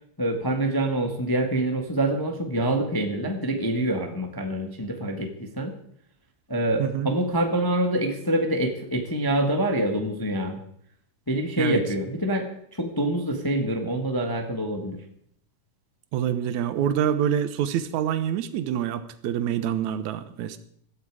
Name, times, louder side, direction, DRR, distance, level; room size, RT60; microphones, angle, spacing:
voice 1, 0.2-5.7 6.5-10.6 11.3-15.0, right 1 dB, 15° left, 4 dB, 0.9 m, -26 dB
voice 2, 6.8-7.1 11.6-11.8 16.1-20.6, right 9 dB, 70° right, 11 dB, 2.3 m, -26 dB
17.0 x 14.0 x 4.9 m, 0.66 s
omnidirectional pair, 3.7 m